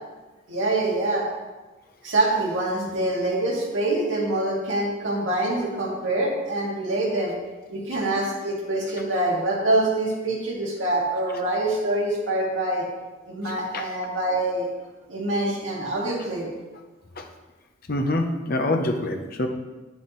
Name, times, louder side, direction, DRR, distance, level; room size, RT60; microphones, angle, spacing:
voice 1, 0.5-1.3 2.0-7.3 7.7-12.8 13.3-14.7 15.1-16.5, right 2 dB, 80° right, -3 dB, 2.2 m, -25 dB
voice 2, 17.9-19.5, left 1 dB, 50° left, 4 dB, 0.8 m, -25 dB
9.6 x 7.0 x 3.1 m, 1.2 s
head